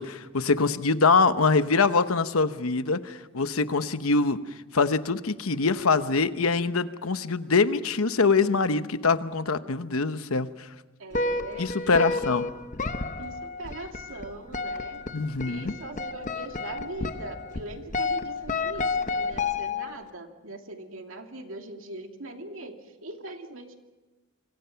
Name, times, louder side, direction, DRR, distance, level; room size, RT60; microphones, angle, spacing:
voice 1, 0.0-4.4 4.7-10.7 11.6-12.5 15.1-15.8, left 4 dB, 90° left, 11 dB, 1.0 m, -24 dB
voice 2, 11.0-12.4 13.2-15.0 15.4-23.8, right 2 dB, 70° right, 4 dB, 2.5 m, -41 dB
sound 1, 11.1-20.1, left 3 dB, 35° left, 0.9 m, -31 dB
28.0 x 23.5 x 5.8 m, 1.2 s
head